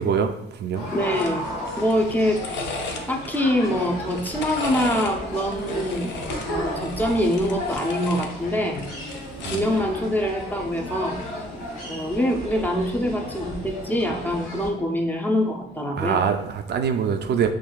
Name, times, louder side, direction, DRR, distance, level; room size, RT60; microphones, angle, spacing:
voice 1, 0.0-0.8 9.4-9.8 16.0-17.5, right 7 dB, 60° right, 6 dB, 0.4 m, -24 dB
sound 1, 0.7-14.7, equal, 90° left, 1.1 m, -33 dB
voice 2, 0.9-1.4 1.8-2.7 3.1-8.8 9.4-11.2 11.8-16.2, equal, 10° left, 1 dB, 0.5 m, -25 dB
sound 2, 1.1-1.4 1.7-3.4 4.0-5.1 5.5-8.3 8.7-9.8 10.9-11.2, left 4 dB, 65° left, 0.6 m, -35 dB
5.9 x 2.4 x 2.3 m, 0.80 s
cardioid pair, 90°, 20 cm